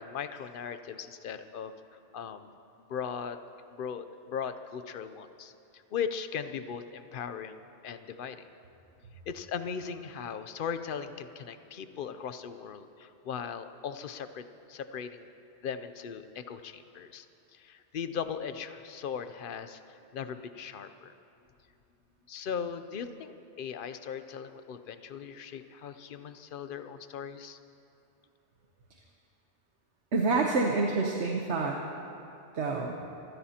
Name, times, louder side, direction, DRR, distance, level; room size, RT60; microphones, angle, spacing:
voice 1, 0.0-2.5 2.9-3.4 3.7-7.6 7.8-8.5 9.3-15.3 15.6-17.3 17.5-21.1 22.3-27.6, left 7 dB, 55° left, 10 dB, 0.7 m, -38 dB
voice 2, 30.1-31.8 32.5-33.0, right 3 dB, 75° right, 1 dB, 1.3 m, -27 dB
26.0 x 15.0 x 2.9 m, 2.7 s
omnidirectional pair, 1.2 m